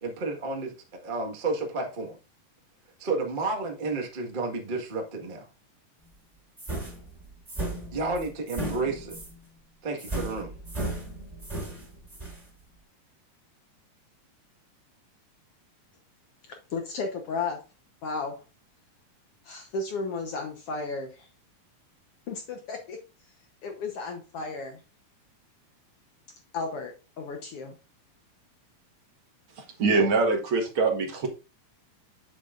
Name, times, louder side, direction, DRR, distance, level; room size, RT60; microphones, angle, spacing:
voice 1, 0.0-0.7 1.0-2.2 3.0-5.4 7.9-9.1 9.8-10.5, right 3 dB, 85° right, 2 dB, 0.4 m, -31 dB
sound 1, 6.6-9.4 10.0-12.4, right 1 dB, 10° right, 3.3 m, -35 dB
voice 2, 16.5-17.6 18.0-18.4 19.4-21.3 22.3-23.0 23.6-24.8 26.5-27.8, left 4 dB, 75° left, 4 dB, 1.3 m, -34 dB
voice 3, 29.6-31.3, right 3 dB, 50° right, 3 dB, 1.8 m, -24 dB
8.1 x 7.3 x 2.5 m, 0.31 s
omnidirectional pair, 3.9 m